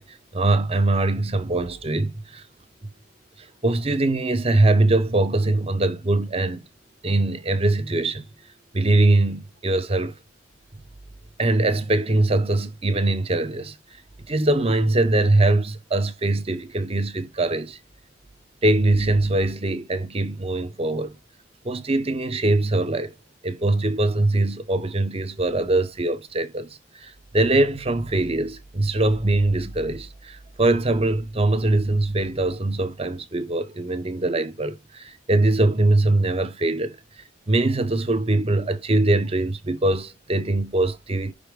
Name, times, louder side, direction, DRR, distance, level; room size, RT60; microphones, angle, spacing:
voice 1, 0.0-2.4 3.6-6.7 7.0-8.2 8.7-10.1 11.4-13.8 14.3-17.8 18.6-21.2 21.6-23.1 23.4-37.0 37.5-41.3, right 2 dB, 30° right, 0.7 m, -22 dB
5.6 x 5.1 x 3.6 m
head